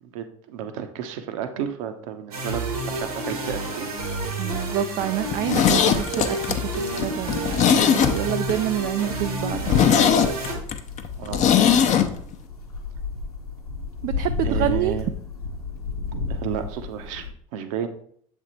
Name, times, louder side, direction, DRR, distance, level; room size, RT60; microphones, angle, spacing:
voice 1, 0.0-4.0 6.7-6.9 11.2-11.7 14.4-15.1 16.3-17.3 17.5-17.9, right 8 dB, 65° right, 8 dB, 0.9 m, -32 dB
sound 1, 2.3-10.6, right 2 dB, 85° right, 1.6 m, -30 dB
voice 2, 4.4-9.9 14.0-14.9, right 13 dB, 45° right, 9 dB, 0.4 m, -28 dB
Zipper (clothing), 5.3-8.5 8.8-8.9 9.3-9.4 9.7-12.1 12.3-12.4, left 8 dB, 40° left, 0.7 m, -20 dB
sound 2, 8.4-17.3, left 4 dB, 90° left, 1.0 m, -33 dB
7.3 x 3.5 x 4.2 m, 0.62 s
figure-of-eight pair, 70°, 19 cm